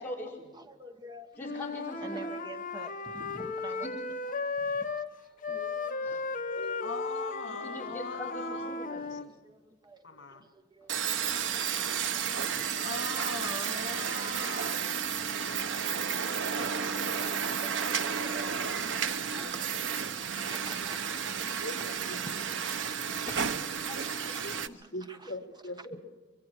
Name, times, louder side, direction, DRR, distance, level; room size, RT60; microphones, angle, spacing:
voice 1, 0.0-0.5 1.4-2.2 3.8-3.9 6.0-6.2 7.5-9.3 16.6-16.8 17.2-17.4 20.4-20.5 23.2-24.8 25.9-26.0, left 1 dB, 10° left, 5.0 m, -43 dB
voice 2, 0.5-1.6 1.9-4.2 4.4-5.7 6.0-6.1 6.6-6.7 9.0-11.3 12.0-13.1 14.0-14.9 19.0-19.8 20.5-23.3 23.9-25.3 25.8-26.0, right 2 dB, 25° right, 1.2 m, -50 dB
Wind instrument woodwind instrument, 1.4-5.1 5.4-9.3, left 4 dB, 45° left, 1.1 m, -35 dB
voice 3, 5.5-5.9 6.2-6.9 12.6-12.7 19.0-19.2 21.6-21.8 22.1-22.2 24.3-26.0, left 1 dB, 65° left, 1.7 m, -43 dB
voice 4, 6.8-8.7 9.1-9.2 10.0-10.4 12.8-14.8, left 3 dB, 80° left, 2.0 m, -40 dB
sound 1, 10.9-24.7, right 7 dB, 75° right, 0.8 m, -32 dB
24.5 x 23.0 x 4.7 m
head